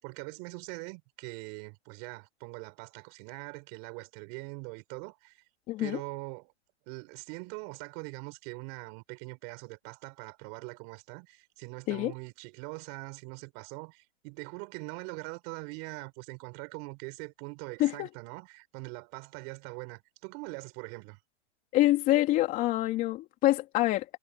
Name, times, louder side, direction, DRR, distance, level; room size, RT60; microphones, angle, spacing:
voice 1, 0.0-5.4 5.8-6.5 6.9-21.2, right 32 dB, 30° right, 6.7 m, -42 dB
voice 2, 5.7-6.0 11.9-12.1 17.8-18.1 21.7-24.1, left 16 dB, 25° left, 3.4 m, -26 dB
hypercardioid pair, 160°, 35 cm